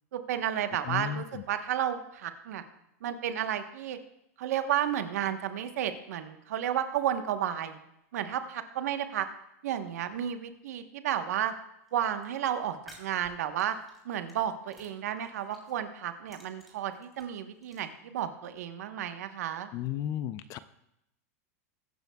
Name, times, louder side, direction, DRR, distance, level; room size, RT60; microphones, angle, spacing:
voice 1, 0.1-2.6 3.0-4.0 4.4-7.8 8.1-9.3 9.6-11.5 11.9-13.8 14.0-19.7, right 10 dB, 80° right, 8 dB, 1.1 m, -32 dB
voice 2, 0.9-1.4 19.7-20.6, left 11 dB, 40° left, 13 dB, 0.5 m, -34 dB
sound 1, 11.9-12.2 12.7-14.4 14.7-15.8 16.1-17.8, right 1 dB, ahead, 3.2 m, -55 dB
21.5 x 9.3 x 2.3 m, 0.81 s
supercardioid pair, 130°, 8 cm